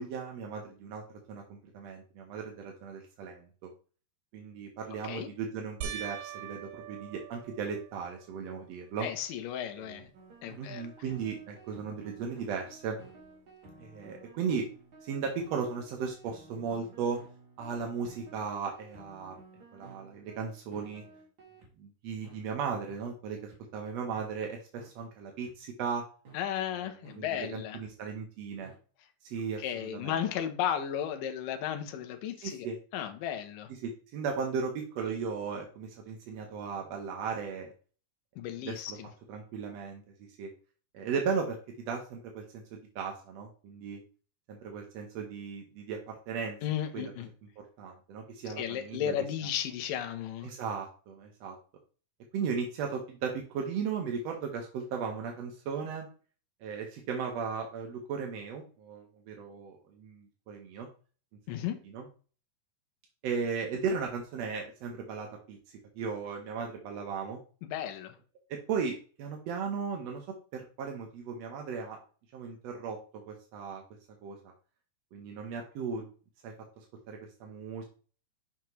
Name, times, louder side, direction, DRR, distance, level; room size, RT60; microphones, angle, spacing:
voice 1, 0.0-3.7 4.3-9.1 9.8-10.0 10.6-13.0 13.8-14.7 15.0-17.2 17.6-19.4 19.7-21.0 21.8-26.0 26.6-28.7 29.2-30.2 32.4-32.8 33.8-37.7 38.7-39.0 39.3-40.0 40.4-40.5 40.9-42.6 42.9-44.0 44.5-46.6 46.9-47.1 47.8-49.1 50.4-51.6 52.3-56.1 56.6-60.9 61.5-61.6 61.9-62.0 63.2-65.6 65.9-67.4 68.5-72.0 72.3-73.8 74.2-74.4 75.1-76.1 76.4-77.8, right 5 dB, 70° right, 2 dB, 1.6 m, -36 dB
sound 1, 5.8-8.4 9.0-9.6 9.9-10.0 13.2-13.3, right 8 dB, 90° right, 2.4 m, -43 dB
voice 2, 9.0-10.1 10.4-10.8 26.3-27.8 29.6-32.7 32.9-33.7 38.4-39.1 46.6-47.3 48.6-50.5 61.5-61.8 67.6-68.2, left 10 dB, 75° left, 6 dB, 2.5 m, -34 dB
sound 2, 10.1-21.7 22.2-22.4 22.9-23.0 23.5-23.6 24.1-24.3 24.8-24.9 25.5-25.6 26.2-26.4 27.0-27.2 27.8-27.9 28.6-28.8, right 3 dB, 45° right, 1.7 m, -53 dB
6.3 x 5.8 x 3.1 m, 0.38 s
omnidirectional pair, 4.0 m